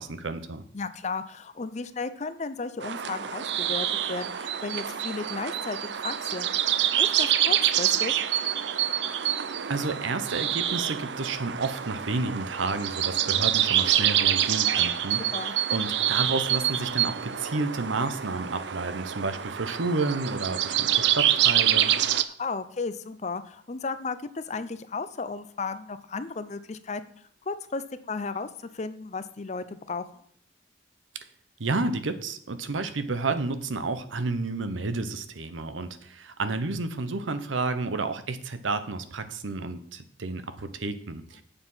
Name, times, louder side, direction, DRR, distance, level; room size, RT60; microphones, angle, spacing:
voice 1, 0.0-0.6 9.7-21.9 31.6-41.4, right 3 dB, 85° right, 10 dB, 0.8 m, -31 dB
voice 2, 0.7-6.5 7.0-8.1 15.3-15.5 22.4-27.0 27.5-30.2, left 4 dB, 35° left, 12 dB, 0.5 m, -34 dB
sound 1, 2.8-22.2, right 11 dB, 65° right, 0.5 m, -26 dB
7.6 x 6.9 x 5.6 m, 0.63 s
head